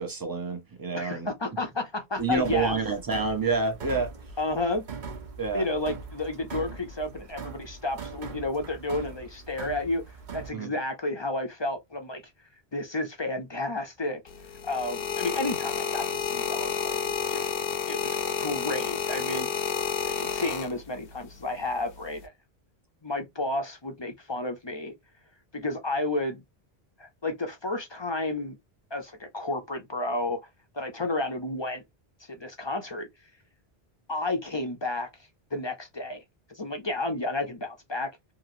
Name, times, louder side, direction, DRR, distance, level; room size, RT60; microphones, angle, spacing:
voice 1, 0.0-1.3 2.2-4.1 5.4-5.6 10.5-10.7, right 4 dB, 25° right, 0.6 m, -28 dB
voice 2, 0.9-2.7 4.4-4.9 5.5-10.0 10.3-12.2 12.7-14.2 14.6-17.5 17.9-19.5 20.0-22.3 23.0-24.9 25.5-26.4 27.0-28.6 28.9-30.4 30.7-31.8 32.3-33.1 34.1-35.1 35.5-36.2 36.5-38.1, left 2 dB, 35° left, 0.5 m, -31 dB
sound 1, 2.2-10.5, right 5 dB, 50° right, 0.9 m, -41 dB
sound 2, 14.3-21.1 21.9-22.3, left 7 dB, 65° left, 0.9 m, -30 dB
2.9 x 2.8 x 2.5 m
omnidirectional pair, 1.1 m